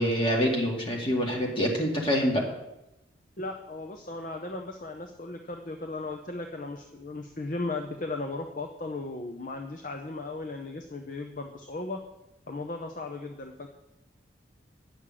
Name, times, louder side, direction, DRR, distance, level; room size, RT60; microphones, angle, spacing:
voice 1, 0.0-2.5, equal, 30° left, -1 dB, 2.1 m, -26 dB
voice 2, 3.4-12.0 12.5-13.7, left 2 dB, 45° left, 4 dB, 0.7 m, -36 dB
9.8 x 6.7 x 7.4 m, 0.90 s
head